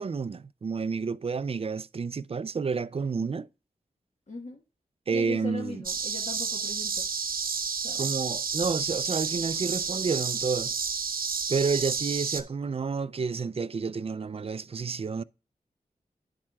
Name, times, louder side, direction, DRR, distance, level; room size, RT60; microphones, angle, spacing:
voice 1, 0.0-3.5 5.1-5.8 8.0-10.7 11.5-15.2, right 5 dB, 40° right, 0.4 m, -30 dB
voice 2, 4.3-4.6 5.1-7.0 7.8-8.0, left 3 dB, 50° left, 1.3 m, -39 dB
sound 1, 5.8-12.4, right 5 dB, 70° right, 0.9 m, -31 dB
9.8 x 7.3 x 2.3 m
cardioid pair, 40°, 15 cm